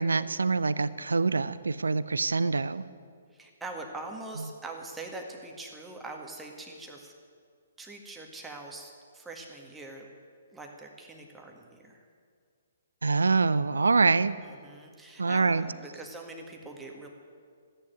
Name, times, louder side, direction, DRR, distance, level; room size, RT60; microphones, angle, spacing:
voice 1, 0.0-2.9 4.4-4.5 13.0-14.3 15.2-15.7, right 4 dB, 80° right, 16 dB, 0.6 m, -25 dB
voice 2, 3.3-7.1 7.8-10.1 10.5-12.0 14.4-17.1, right 2 dB, 10° right, 1 dB, 1.9 m, -43 dB
14.0 x 9.9 x 9.3 m, 2.1 s
figure-of-eight pair, 130°, 0 cm